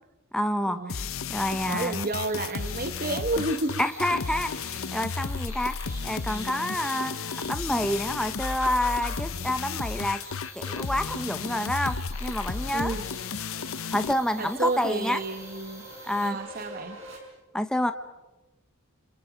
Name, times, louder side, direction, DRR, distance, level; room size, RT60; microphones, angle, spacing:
voice 1, 0.3-2.0 3.8-5.8 6.0-10.2 10.6-12.9 13.9-15.2 16.0-16.4 17.5-17.9, left 1 dB, 5° left, 8 dB, 0.9 m, -28 dB
sound 1, 0.9-14.1, left 5 dB, 75° left, 0.8 m, -33 dB
sound 2, 1.5-16.3, right 1 dB, 15° right, 5.4 m, -47 dB
voice 2, 1.7-3.8 12.7-13.1 14.4-15.9 16.2-17.0, right 2 dB, 40° right, 9 dB, 1.3 m, -30 dB
sound 3, 11.7-17.2, right 1 dB, 65° right, 6.2 m, -48 dB
28.5 x 27.5 x 5.1 m, 1.1 s
head